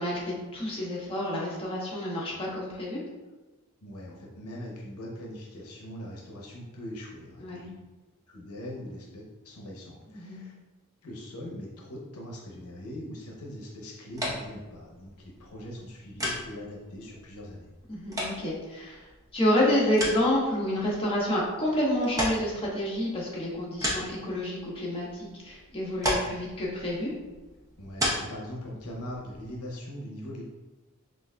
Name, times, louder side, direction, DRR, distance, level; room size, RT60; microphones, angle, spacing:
voice 1, 0.0-3.0 7.4-7.7 10.1-10.4 17.9-19.0 19.3-27.1, left 1 dB, 25° left, -5 dB, 1.0 m, -29 dB
voice 2, 3.8-7.7 8.3-10.6 11.0-17.7 27.8-30.4, equal, 75° left, -2 dB, 0.8 m, -41 dB
sound 1, 14.1-29.8, equal, 15° right, 0.7 m, -36 dB
6.0 x 2.5 x 2.2 m, 1.1 s
head